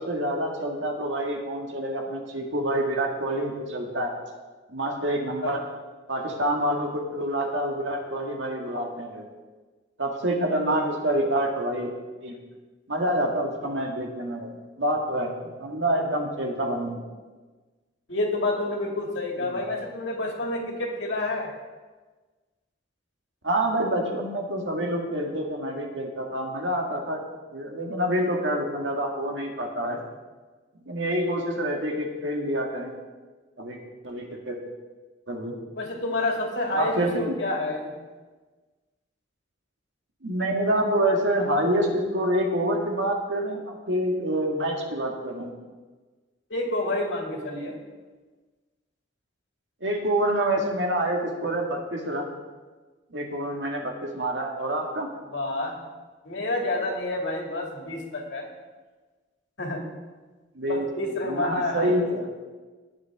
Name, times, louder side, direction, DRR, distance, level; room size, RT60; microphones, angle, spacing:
voice 1, 0.0-4.1 4.7-5.6 6.1-9.3 10.0-11.9 12.2-12.4 12.9-14.5 14.8-17.0 19.4-19.6 23.4-27.2 27.5-30.0 30.9-32.9 33.6-33.8 34.0-34.6 35.3-35.5 36.7-37.4 40.2-45.5 49.8-52.3 53.1-55.1 60.6-60.9 61.2-62.3, right 1 dB, 65° right, 1 dB, 1.9 m, -27 dB
voice 2, 18.1-21.5 35.8-37.9 46.5-47.7 55.3-55.7 56.2-58.5 59.6-59.8 60.7-61.9, left 2 dB, 65° left, 0 dB, 2.4 m, -29 dB
19.0 x 7.4 x 3.6 m, 1.3 s
head